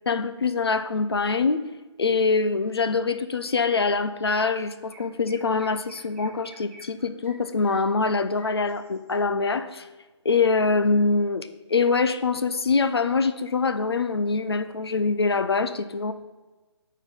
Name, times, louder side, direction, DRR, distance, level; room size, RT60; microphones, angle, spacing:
voice 1, 0.1-1.6 2.0-9.9 10.2-16.1, left 4 dB, 55° left, 11 dB, 0.6 m, -24 dB
Chirp tweet, 4.2-4.3 4.6-9.1, right 1 dB, 25° right, 1.1 m, -51 dB
13.0 x 4.7 x 5.3 m, 1.2 s
hypercardioid pair, 180°, 15 cm